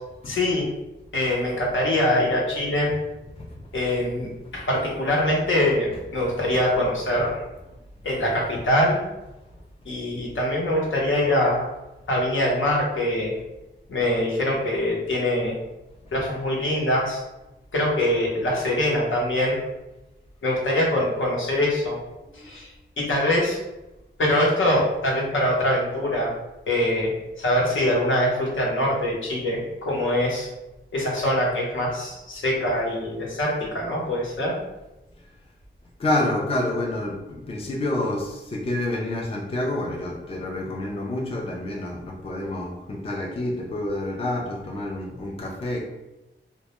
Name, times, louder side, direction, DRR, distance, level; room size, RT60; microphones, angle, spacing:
voice 1, 0.3-0.7 1.1-2.9 3.7-7.4 8.0-9.0 9.9-11.7 12.1-13.3 13.9-15.6 16.1-17.2 17.7-19.6 20.4-22.0 22.3-22.7 23.0-23.6 24.2-26.3 26.7-27.1 27.4-30.5 30.9-34.5, left 1 dB, 80° left, -3 dB, 0.7 m, -23 dB
voice 2, 3.3-3.7 16.1-16.2 22.2-22.5 36.0-45.8, left 1 dB, 30° left, -1 dB, 0.4 m, -28 dB
2.1 x 2.0 x 2.9 m, 0.99 s
wide cardioid pair, 120°, 20 cm